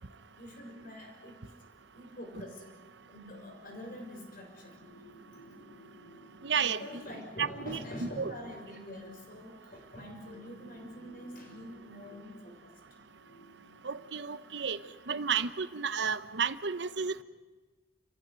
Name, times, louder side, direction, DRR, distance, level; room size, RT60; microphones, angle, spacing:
voice 1, 0.1-1.4 1.9-2.7 3.1-4.9 6.7-12.7, equal, 50° left, 2 dB, 6.4 m, -45 dB
sound 1, 2.6-15.0, equal, 80° left, 6.7 m, -58 dB
voice 2, 6.4-7.0 7.4-8.3 13.8-14.8 15.1-17.2, right 6 dB, 70° right, 14 dB, 0.9 m, -32 dB
29.5 x 15.5 x 9.4 m, 1.3 s
head